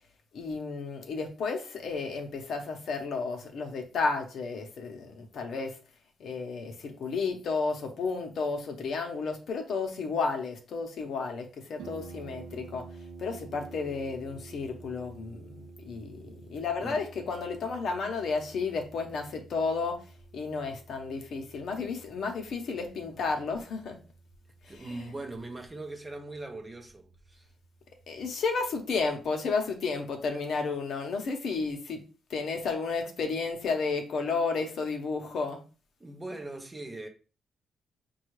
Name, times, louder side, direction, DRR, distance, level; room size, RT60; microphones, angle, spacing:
voice 1, 0.3-5.8 6.2-12.9 13.2-20.0 20.3-24.0 24.6-25.1 28.1-32.0 32.3-35.6, left 4 dB, 60° left, 0.8 m, -32 dB
Harp, 11.8-29.3, right 4 dB, 80° right, 0.4 m, -50 dB
voice 2, 24.7-27.5 36.0-37.1, right 2 dB, 15° right, 0.6 m, -40 dB
5.4 x 2.3 x 3.1 m
cardioid pair, 155°, 0 cm